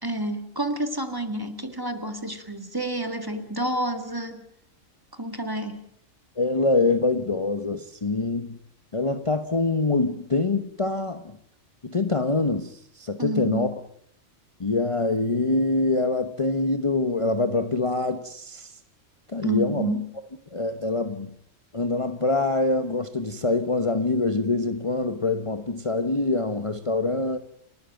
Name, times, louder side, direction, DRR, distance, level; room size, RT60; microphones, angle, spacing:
voice 1, 0.0-4.5 5.1-5.8 13.2-13.7 19.4-20.0, right 1 dB, 15° right, 2.2 m, -29 dB
voice 2, 6.4-8.6 8.9-11.4 11.8-13.7 14.6-18.7 19.3-19.9 20.5-21.3 21.7-27.4, left 3 dB, 25° left, 1.1 m, -25 dB
29.5 x 13.0 x 9.2 m
omnidirectional pair, 1.3 m